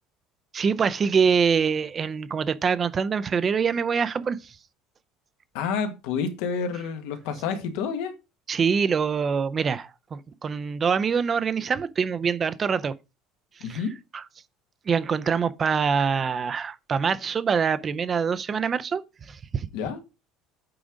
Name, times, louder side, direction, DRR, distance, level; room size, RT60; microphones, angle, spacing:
voice 1, 0.5-4.4 8.5-12.9 13.7-13.8 14.1-14.2 14.9-19.0 19.3-19.7, right 6 dB, 20° right, 0.4 m, -24 dB
voice 2, 5.5-8.1 13.6-13.9 19.7-20.0, left 6 dB, 75° left, 1.6 m, -29 dB
8.7 x 3.8 x 4.9 m
cardioid pair, 175°, 0 cm